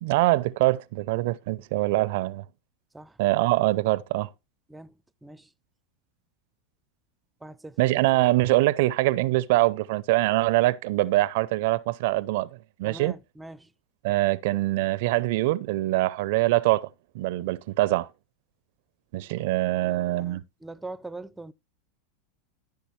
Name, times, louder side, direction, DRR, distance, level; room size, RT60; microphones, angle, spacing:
voice 1, 0.0-2.4 3.2-4.3 7.8-13.1 14.0-16.9 17.1-18.1 19.1-20.4, right 18 dB, 65° right, 0.4 m, -24 dB
voice 2, 4.7-5.5 7.4-7.8 12.8-13.7 19.7-21.5, right 2 dB, 10° right, 0.5 m, -43 dB
14.0 x 5.9 x 3.1 m
hypercardioid pair, 95°, 0 cm